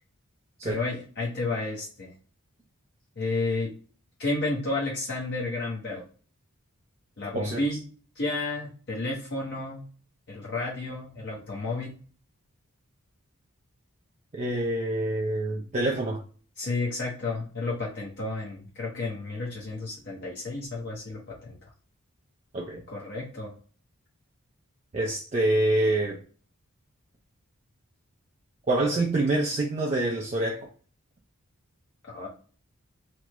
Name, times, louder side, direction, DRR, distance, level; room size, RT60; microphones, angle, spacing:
voice 1, 0.6-2.1 3.2-3.7 4.2-6.0 7.2-7.8 8.1-9.8 10.3-12.0 16.6-21.6 22.9-23.5 32.1-32.3, left 2 dB, 50° left, -4 dB, 0.7 m, -31 dB
voice 2, 14.3-16.2 22.5-22.8 24.9-26.2 28.7-30.7, right 2 dB, 30° right, -1 dB, 0.4 m, -26 dB
3.0 x 2.0 x 3.4 m, 0.42 s
head